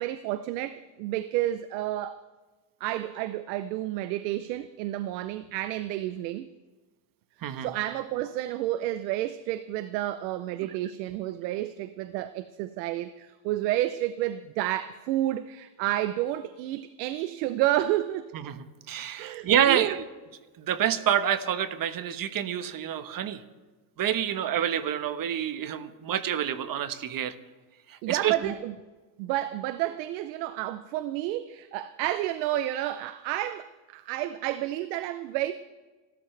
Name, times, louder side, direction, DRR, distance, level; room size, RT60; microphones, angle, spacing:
voice 1, 0.0-2.2 2.8-6.5 7.6-18.3 19.2-20.0 28.0-28.7 29.2-35.5, right 14 dB, 90° right, 0.8 m, -30 dB
voice 2, 7.4-7.7 18.3-20.0 20.6-23.4 24.0-27.3 27.9-28.5, right 10 dB, 45° right, 1.3 m, -28 dB
29.5 x 13.0 x 3.3 m
supercardioid pair, 110°, 49 cm